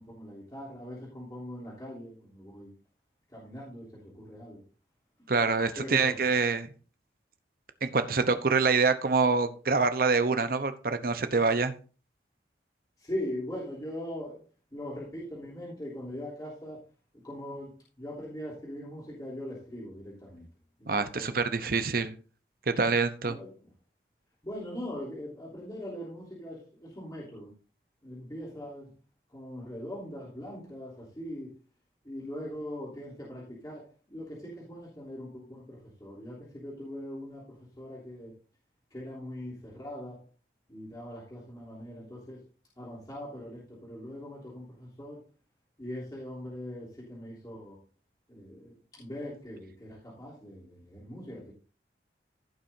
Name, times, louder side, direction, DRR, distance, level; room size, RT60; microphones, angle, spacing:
voice 1, 0.0-2.7 3.3-3.9 4.2-4.6 5.8-6.1 13.0-14.4 14.7-16.8 17.2-17.7 18.0-20.4 20.8-21.3 23.3-23.5 24.4-27.5 28.0-28.9 29.3-31.5 32.0-33.8 34.1-37.4 37.8-38.3 38.9-40.2 40.7-42.4 42.8-45.2 45.8-47.8 48.3-51.5, left 1 dB, 20° left, -7 dB, 3.3 m, -41 dB
voice 2, 5.3-6.7 7.8-11.7 20.9-22.1 22.7-23.4, right 4 dB, 55° right, 10 dB, 0.8 m, -26 dB
16.0 x 6.2 x 2.7 m, 0.37 s
head